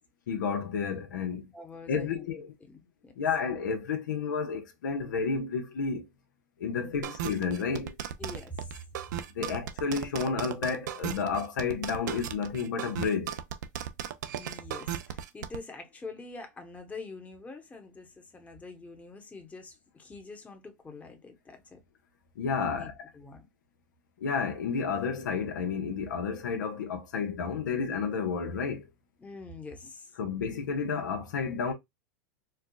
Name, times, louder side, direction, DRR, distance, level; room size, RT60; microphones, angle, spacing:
voice 1, 0.3-1.5 1.9-2.5 3.2-6.1 6.6-7.9 9.3-13.3 22.4-22.9 24.2-28.9 30.2-31.7, left 5 dB, 85° left, 1.0 m, -31 dB
voice 2, 1.5-2.3 2.6-3.1 6.8-7.1 8.2-8.8 14.3-21.8 22.6-23.5 29.2-30.1, left 3 dB, 15° left, 1.0 m, -45 dB
sound 1, 7.0-15.6, right 10 dB, 75° right, 0.6 m, -36 dB
4.5 x 2.3 x 2.3 m
hypercardioid pair, 110°, 10 cm